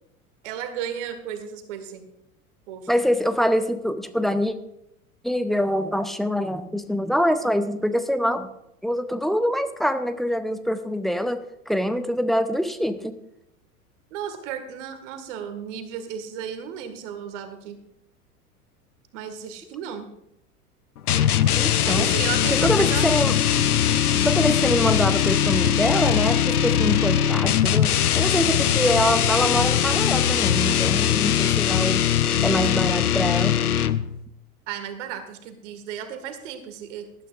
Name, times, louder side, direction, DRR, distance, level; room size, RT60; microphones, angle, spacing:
voice 1, 0.4-2.1 2.7-2.9 14.1-17.8 19.1-20.1 21.7-23.2 34.7-37.1, right 8 dB, 55° right, 9 dB, 1.8 m, -34 dB
voice 2, 2.9-4.6 5.2-8.5 8.8-13.1 21.6-22.1 22.5-23.3 24.2-32.1 32.4-33.6, equal, ahead, 10 dB, 0.5 m, -24 dB
sound 1, 21.1-34.2, left 9 dB, 75° left, 0.7 m, -21 dB
18.5 x 12.5 x 2.5 m, 0.82 s
figure-of-eight pair, 85°, 45 cm